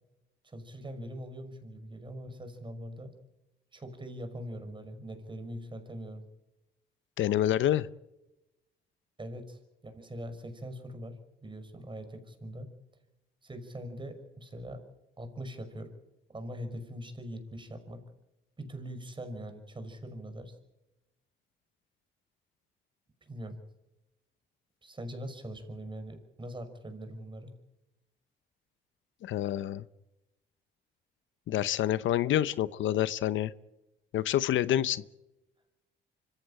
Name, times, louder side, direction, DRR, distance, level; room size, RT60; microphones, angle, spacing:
voice 1, 0.4-3.1 3.7-6.2 9.2-12.7 13.4-14.8 15.2-16.0 16.3-18.0 18.6-20.5 23.2-23.6 24.8-27.5, equal, 25° right, 8 dB, 5.8 m, -42 dB
voice 2, 7.2-7.9 29.2-29.8 31.5-33.5 34.1-35.0, left 12 dB, 75° left, 16 dB, 0.8 m, -27 dB
25.5 x 15.0 x 9.0 m, 0.93 s
cardioid pair, 90°, 20 cm